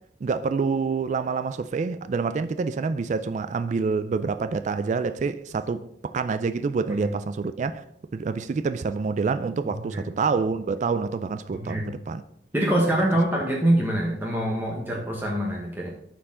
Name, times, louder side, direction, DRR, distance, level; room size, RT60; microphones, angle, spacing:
voice 1, 0.2-7.8 8.1-12.2, right 4 dB, 40° right, 0.3 m, -27 dB
voice 2, 11.5-11.9 12.5-15.9, right 1 dB, 10° right, 1.0 m, -24 dB
11.0 x 4.5 x 3.7 m
head